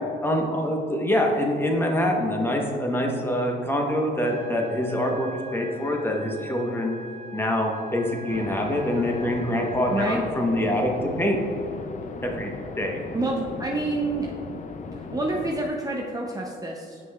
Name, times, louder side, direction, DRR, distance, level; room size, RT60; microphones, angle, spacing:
voice 1, 0.2-6.9 7.3-10.9 11.2-11.4 12.2-13.0, left 1 dB, 10° left, 0 dB, 1.0 m, -25 dB
sound 1, 4.2-10.2, right 1 dB, 35° right, 1.0 m, -43 dB
sound 2, 8.3-15.7, left 4 dB, 40° left, 0.5 m, -37 dB
voice 2, 13.1-14.3 15.0-17.0, right 2 dB, 20° right, -1 dB, 0.6 m, -28 dB
7.6 x 5.9 x 2.3 m, 2.5 s
cardioid pair, 90°, 20 cm